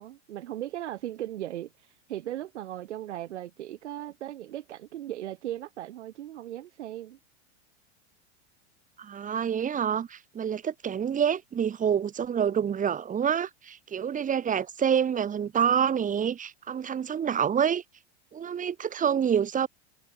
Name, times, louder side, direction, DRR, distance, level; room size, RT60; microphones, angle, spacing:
voice 1, 0.0-1.7 2.1-7.2, right 13 dB, 85° right, 4.3 m, -37 dB
voice 2, 9.0-17.8 18.3-19.7, right 8 dB, 25° right, 6.2 m, -27 dB
supercardioid pair, 135°, 34 cm